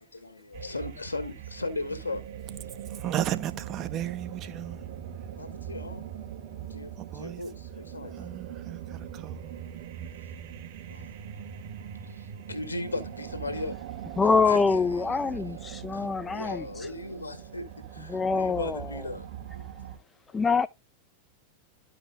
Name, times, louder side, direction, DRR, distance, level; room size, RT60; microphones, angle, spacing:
voice 1, 0.0-2.2 5.3-6.1 6.7-8.3 10.9-11.2 12.0-13.7 14.2-15.4 15.9-19.9 20.3-20.4, left 2 dB, 80° left, 1.6 m, -38 dB
sound 1, 0.5-20.0, right 9 dB, 50° right, 1.7 m, -41 dB
voice 2, 3.0-4.8 7.1-7.4 8.2-8.8 9.2-9.5, right 12 dB, 35° right, 0.7 m, -33 dB
voice 3, 14.2-16.6 18.1-18.9 20.3-20.7, left 4 dB, 15° left, 0.3 m, -25 dB
13.0 x 5.0 x 2.3 m
figure-of-eight pair, 90°, 0 cm